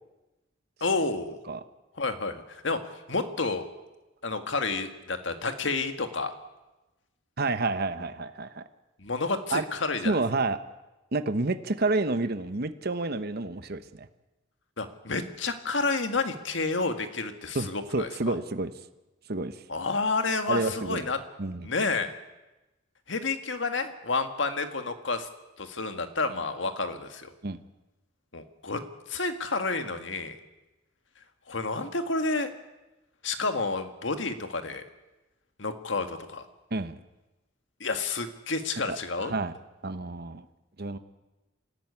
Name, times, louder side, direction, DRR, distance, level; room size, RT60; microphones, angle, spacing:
voice 1, 0.8-1.4 2.0-2.8 3.1-3.6 4.2-6.3 9.0-10.2 14.8-18.3 19.7-21.2 21.6-22.1 23.1-25.3 25.6-27.3 28.3-28.8 29.1-30.4 31.5-32.5 33.2-34.8 35.6-36.4 37.8-39.3, left 3 dB, 70° left, 8 dB, 1.8 m, -30 dB
voice 2, 7.4-8.6 9.5-9.6 10.0-10.6 11.1-14.1 17.5-18.7 19.3-19.5 20.5-21.0 21.4-21.7 27.4-27.6 36.7-37.0 38.9-39.5 39.8-40.4 40.8-41.0, right 3 dB, 55° right, 11 dB, 1.0 m, -29 dB
25.5 x 13.5 x 9.7 m, 1.1 s
head